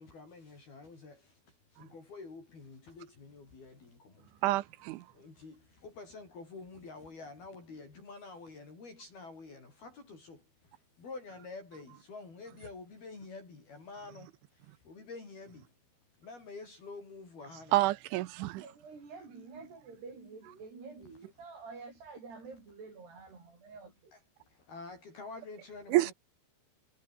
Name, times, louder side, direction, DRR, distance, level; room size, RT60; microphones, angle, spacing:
voice 1, 0.0-4.5 5.1-15.7 16.2-17.8 24.1-24.2 24.5-26.1, left 3 dB, 55° left, 9.8 m, -48 dB
voice 2, 4.4-5.0 17.7-18.6 25.9-26.1, right 18 dB, 90° right, 3.4 m, -28 dB
voice 3, 18.5-24.1, right 4 dB, 60° right, 9.7 m, -49 dB
omnidirectional pair, 5.3 m